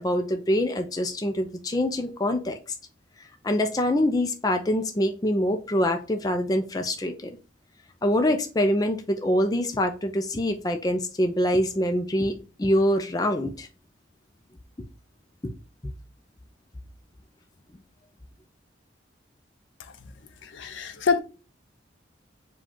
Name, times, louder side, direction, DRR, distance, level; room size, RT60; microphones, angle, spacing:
voice 1, 0.0-2.6 3.4-7.4 8.0-13.7 15.4-15.5, left 1 dB, 20° left, 0.4 m, -25 dB
voice 2, 20.4-21.2, left 5 dB, 85° left, 0.6 m, -25 dB
4.8 x 2.3 x 3.7 m
head